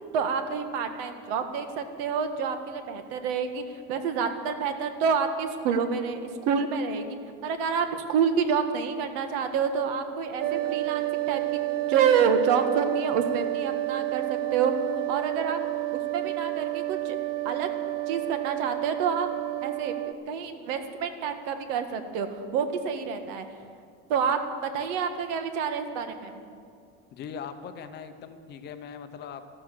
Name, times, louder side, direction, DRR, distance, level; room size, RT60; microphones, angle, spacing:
voice 1, 0.1-3.6 3.9-6.2 6.5-7.0 7.4-11.6 11.9-14.7 15.1-15.6 16.1-17.2 17.4-17.7 18.1-19.3 19.6-19.9 20.3-23.4 24.1-26.4, right 6 dB, 70° right, 7 dB, 1.6 m, -28 dB
sound 1, 10.4-20.1, right 17 dB, 35° right, 0.4 m, -30 dB
voice 2, 27.1-29.6, left 7 dB, 35° left, 9 dB, 0.8 m, -40 dB
13.5 x 12.5 x 7.7 m, 2.2 s
cardioid pair, 170°, 31 cm